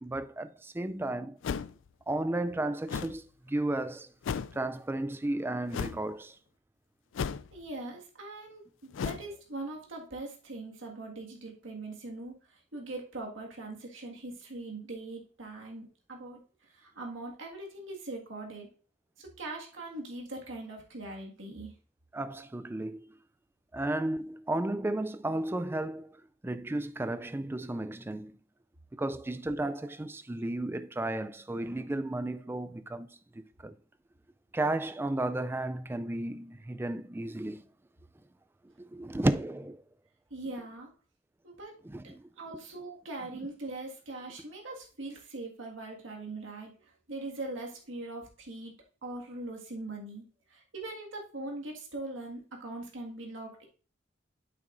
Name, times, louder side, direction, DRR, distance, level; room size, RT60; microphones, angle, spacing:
voice 1, 0.0-1.4 2.1-4.1 4.5-6.4 22.1-23.1 23.7-26.1 26.4-28.3 28.9-33.1 33.3-33.7 34.5-37.7 38.8-39.8 41.8-42.3, right 1 dB, 10° right, 0.3 m, -33 dB
sound 1, 1.4-1.9 2.9-3.2 4.2-4.6 5.7-6.0 7.1-7.6 8.9-9.3, left 6 dB, 80° left, 0.4 m, -34 dB
voice 2, 7.5-16.4 16.7-18.7 19.2-21.7 40.3-40.9 41.4-41.7 42.4-48.7 49.0-50.3 50.5-53.7, right 2 dB, 85° right, 1.8 m, -41 dB
9.1 x 7.9 x 2.6 m
head